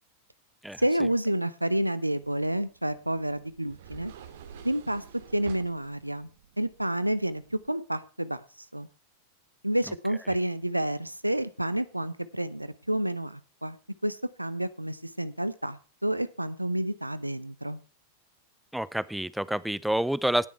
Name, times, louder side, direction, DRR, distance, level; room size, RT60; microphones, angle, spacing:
voice 1, 0.8-4.1 4.6-5.0 5.3-6.3 6.6-8.4 8.7-8.9 9.6-13.8 14.0-17.8, right 1 dB, 85° right, 16 dB, 0.7 m, -29 dB
sound 1, 2.2-7.7, right 8 dB, 55° right, 2.3 m, -50 dB
voice 2, 18.7-20.5, right 1 dB, ahead, 18 dB, 0.6 m, -28 dB
17.5 x 7.0 x 4.6 m, 0.35 s
figure-of-eight pair, 90°, 0 cm